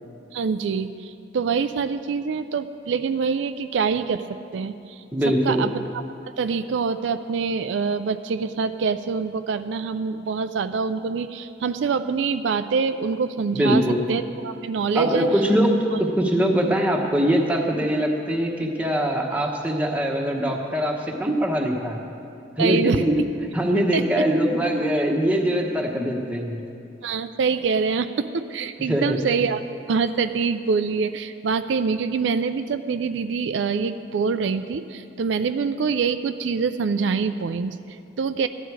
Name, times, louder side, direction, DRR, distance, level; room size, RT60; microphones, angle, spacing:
voice 1, 0.3-4.3 4.5-5.0 5.4-5.7 6.4-13.8 14.1-15.3 15.8-16.0 22.6-23.0 23.9-24.0 27.0-29.6 29.9-38.5, right 5 dB, 75° right, 10 dB, 0.4 m, -25 dB
voice 2, 5.1-5.7 13.5-14.0 14.9-15.8 16.1-22.0 22.6-23.2 23.5-26.6 28.9-29.2, equal, 5° right, 0 dB, 1.1 m, -22 dB
14.5 x 11.0 x 4.7 m, 2.6 s
head